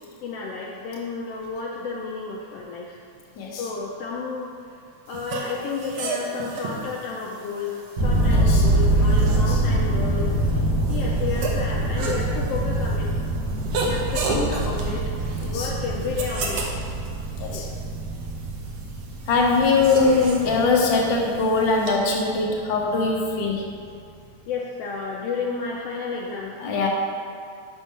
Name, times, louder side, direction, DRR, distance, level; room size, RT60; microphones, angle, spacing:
voice 1, 0.2-3.0 3.6-4.5 5.1-13.1 13.8-15.0 15.4-16.7 17.5-17.8 24.5-26.6, left 4 dB, 85° left, -2 dB, 1.4 m, -31 dB
sound 1, 5.1-21.9, right 3 dB, 65° right, 1.5 m, -34 dB
sound 2, 8.0-21.6, right 1 dB, 85° right, 0.9 m, -24 dB
voice 2, 8.2-8.7 9.2-9.6 15.4-15.7 17.4-17.7 19.3-23.6 26.6-26.9, left 4 dB, 60° left, -1 dB, 1.3 m, -22 dB
6.0 x 5.6 x 5.5 m, 2.4 s
omnidirectional pair, 3.4 m